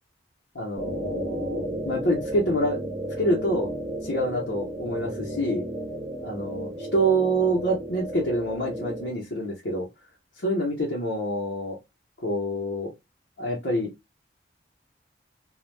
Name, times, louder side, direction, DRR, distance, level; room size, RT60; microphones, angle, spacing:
voice 1, 0.5-2.8 3.2-3.7 4.0-5.6 6.2-9.9 10.4-11.8 12.2-12.9 13.4-13.9, right 1 dB, 85° left, -4 dB, 0.8 m, -26 dB
sound 1, 0.8-9.1, right 1 dB, 15° right, 0.6 m, -33 dB
2.2 x 2.1 x 3.1 m, 0.21 s
head